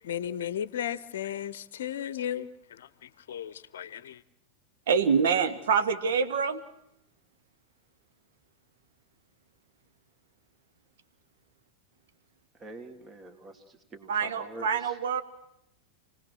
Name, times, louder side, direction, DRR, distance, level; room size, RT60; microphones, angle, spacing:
voice 1, 0.0-4.2, left 10 dB, 60° left, 17 dB, 0.8 m, -35 dB
voice 2, 4.9-6.6 14.1-15.2, right 6 dB, 60° right, 8 dB, 1.8 m, -26 dB
voice 3, 12.5-15.0, right 2 dB, 25° right, 5 dB, 2.6 m, -46 dB
29.0 x 19.0 x 6.3 m, 0.79 s
figure-of-eight pair, 90°, 0 cm